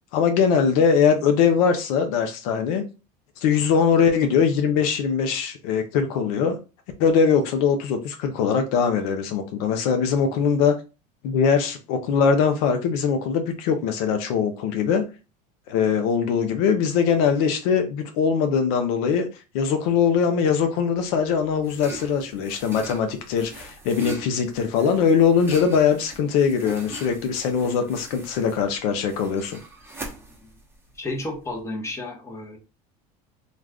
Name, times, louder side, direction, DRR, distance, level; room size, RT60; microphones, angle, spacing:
voice 1, 0.1-2.8 3.4-6.6 7.0-10.7 11.2-15.0 15.7-19.3 19.5-29.6, left 6 dB, 75° left, 0.6 m, -21 dB
sound 1, 21.0-31.6, right 2 dB, 10° right, 0.9 m, -41 dB
voice 2, 31.0-32.6, left 2 dB, 15° left, 0.9 m, -32 dB
2.4 x 2.3 x 3.4 m
supercardioid pair, 115°, 20 cm